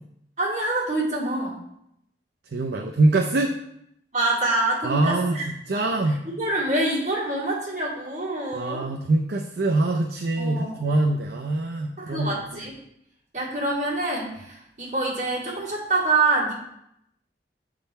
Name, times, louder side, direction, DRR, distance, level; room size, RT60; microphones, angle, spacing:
voice 1, 0.4-1.6 4.1-5.5 5.7-8.9 10.4-10.8 12.0-12.7 13.3-16.5, right 2 dB, 40° right, -8 dB, 2.2 m, -26 dB
voice 2, 2.5-3.6 4.8-6.3 8.5-12.4, right 2 dB, 65° right, 2 dB, 0.5 m, -24 dB
7.9 x 3.8 x 4.2 m, 0.77 s
head